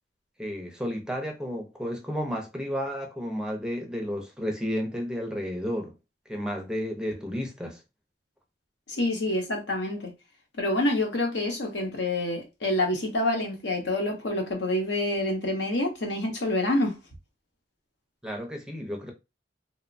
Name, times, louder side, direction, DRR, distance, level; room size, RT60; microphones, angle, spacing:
voice 1, 0.4-5.9 6.3-7.8 18.2-19.1, equal, 5° right, 0.5 m, -32 dB
voice 2, 8.9-10.1 10.6-17.0, left 1 dB, 75° left, 0.8 m, -27 dB
2.9 x 2.0 x 2.5 m
head